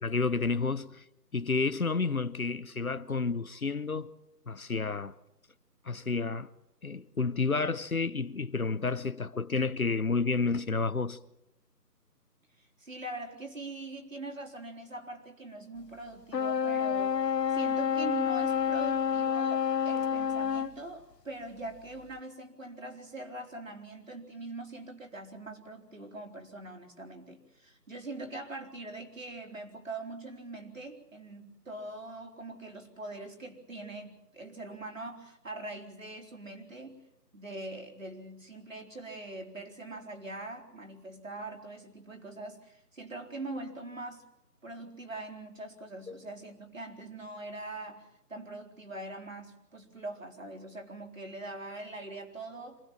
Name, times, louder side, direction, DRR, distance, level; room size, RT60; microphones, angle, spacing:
voice 1, 0.0-1.0 1.3-4.1 4.5-5.1 5.8-6.5 6.8-11.2 46.1-46.2, left 4 dB, 60° left, 1.1 m, -30 dB
voice 2, 12.6-37.0 37.3-44.2 44.6-52.8, right 2 dB, 50° right, 4.3 m, -42 dB
sound 1, 16.3-20.8, left 7 dB, 85° left, 0.8 m, -29 dB
27.5 x 20.0 x 7.5 m
figure-of-eight pair, 175°, 48 cm